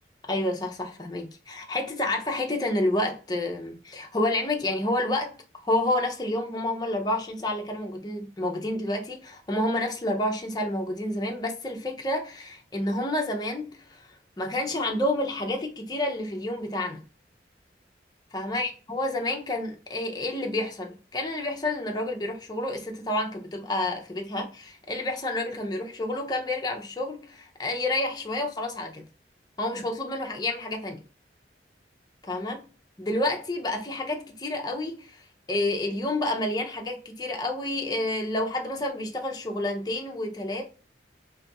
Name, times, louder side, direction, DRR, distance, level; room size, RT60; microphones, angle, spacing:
voice 1, 0.3-5.4 5.6-14.1 14.4-17.0 18.3-29.1 29.6-31.0 32.2-32.6 33.0-40.6, left 1 dB, 20° left, 0.5 m, -29 dB
2.6 x 2.4 x 4.0 m
head